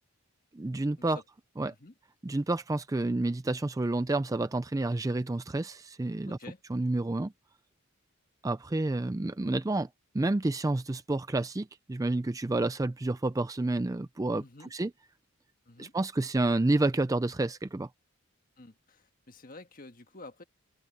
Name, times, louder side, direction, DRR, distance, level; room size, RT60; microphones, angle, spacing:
voice 1, 0.5-1.2 1.6-1.7 2.2-6.4 6.7-7.3 8.4-9.9 10.1-14.4 14.7-14.9 15.8-17.9, right 2 dB, 15° right, 0.4 m, -29 dB
voice 2, 6.3-6.6 14.3-14.7 15.6-15.9 18.6-20.4, left 2 dB, 40° left, 1.6 m, -50 dB
head